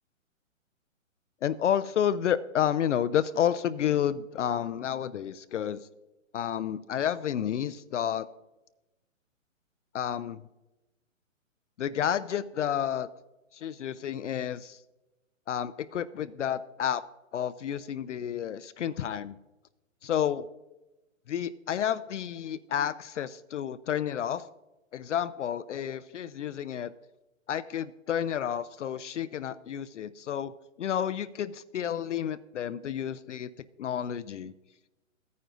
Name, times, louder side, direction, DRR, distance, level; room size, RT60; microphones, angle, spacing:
voice 1, 1.4-5.9 6.3-8.3 9.9-10.4 11.8-13.1 13.5-14.8 15.5-17.0 17.3-19.4 20.0-20.5 21.3-24.4 24.9-26.9 27.5-30.5 30.8-33.5 33.8-34.5, left 9 dB, 65° left, 14 dB, 0.5 m, -30 dB
15.5 x 9.3 x 2.5 m, 1.0 s
hypercardioid pair, 150°, 40 cm